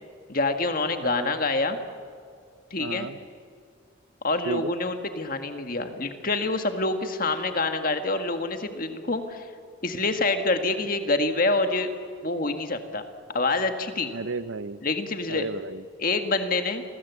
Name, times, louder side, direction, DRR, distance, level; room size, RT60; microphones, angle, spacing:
voice 1, 0.3-1.8 2.7-3.1 4.2-9.5 9.8-11.9 12.2-13.0 13.3-14.1 14.8-15.5 16.0-16.8, left 3 dB, 45° left, 7 dB, 1.8 m, -26 dB
voice 2, 1.0-1.3 2.8-3.2 4.4-4.7 14.1-14.8 15.3-15.8, right 3 dB, 75° right, 14 dB, 0.8 m, -33 dB
28.5 x 20.5 x 8.3 m, 2.2 s
head